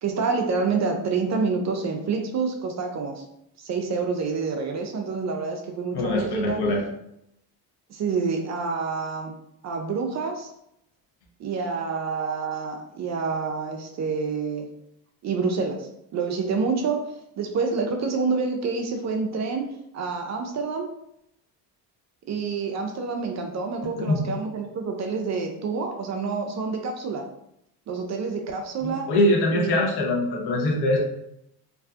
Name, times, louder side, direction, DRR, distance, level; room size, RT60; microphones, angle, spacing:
voice 1, 0.0-3.2 3.6-6.6 7.9-9.3 9.6-10.5 11.4-14.7 15.2-19.7 19.9-20.9 22.3-27.2 27.9-29.1 29.5-29.8, right 4 dB, 35° right, 3 dB, 0.4 m, -27 dB
voice 2, 5.9-6.8 24.1-24.2 28.8-31.0, left 1 dB, 50° left, -1 dB, 0.9 m, -23 dB
2.6 x 2.3 x 2.4 m, 0.78 s
hypercardioid pair, 65°, 50 cm